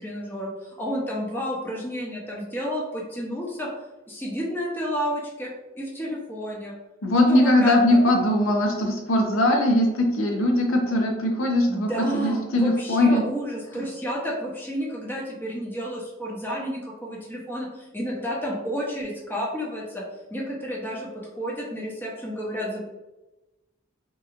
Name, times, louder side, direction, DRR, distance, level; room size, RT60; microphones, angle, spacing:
voice 1, 0.0-3.7 4.1-5.5 5.8-6.7 7.3-7.8 11.7-20.0 20.3-21.1 21.3-22.9, equal, 10° left, -4 dB, 0.8 m, -31 dB
voice 2, 7.0-13.2 13.8-13.9, left 1 dB, 90° left, 1 dB, 0.7 m, -20 dB
3.8 x 2.9 x 2.5 m, 1.0 s
head